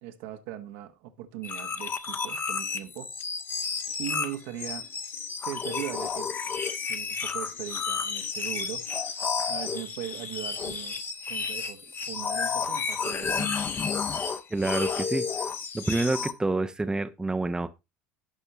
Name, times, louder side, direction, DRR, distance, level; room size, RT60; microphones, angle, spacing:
voice 1, 0.0-3.1 4.0-4.9 5.4-6.3 6.9-11.0 11.3-11.8 12.1-13.6, right 12 dB, 65° right, 1.1 m, -39 dB
sound 1, 1.4-16.3, left 5 dB, 35° left, 1.0 m, -31 dB
voice 2, 14.5-15.3 15.7-17.7, right 2 dB, 10° right, 0.7 m, -28 dB
16.5 x 5.5 x 2.9 m
figure-of-eight pair, 70°, 6 cm